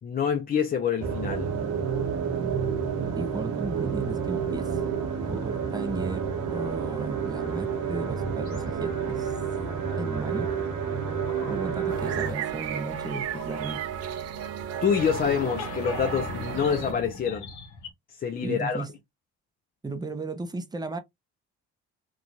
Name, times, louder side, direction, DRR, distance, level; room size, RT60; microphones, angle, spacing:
voice 1, 0.0-1.5 14.8-17.5 18.1-18.8, left 7 dB, 30° left, 0.4 m, -26 dB
sound 1, 1.0-12.3, right 6 dB, 80° right, 1.0 m, -29 dB
voice 2, 3.1-4.8 5.3-9.3 10.0-10.5 11.4-13.8 18.4-18.9 19.8-21.0, right 3 dB, 15° right, 0.6 m, -35 dB
sound 2, 8.5-9.3 11.3-11.8 12.1-12.4 13.3-14.1 14.4-14.5 14.8-17.9, left 4 dB, 85° left, 0.8 m, -39 dB
sound 3, 11.9-16.9, right 8 dB, 60° right, 0.5 m, -34 dB
2.9 x 2.3 x 2.5 m
supercardioid pair, 80°, 29 cm